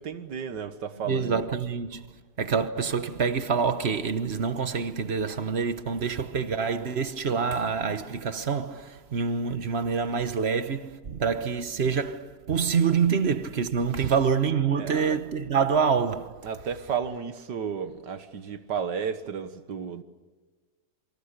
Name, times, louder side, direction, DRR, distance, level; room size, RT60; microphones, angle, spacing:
voice 1, 0.0-1.5 14.0-14.1 14.7-15.2 16.4-20.0, right 7 dB, 90° right, 2.0 m, -33 dB
voice 2, 1.1-2.0 2.4-16.3, right 6 dB, 40° right, 1.2 m, -26 dB
28.0 x 25.0 x 6.7 m
omnidirectional pair, 1.8 m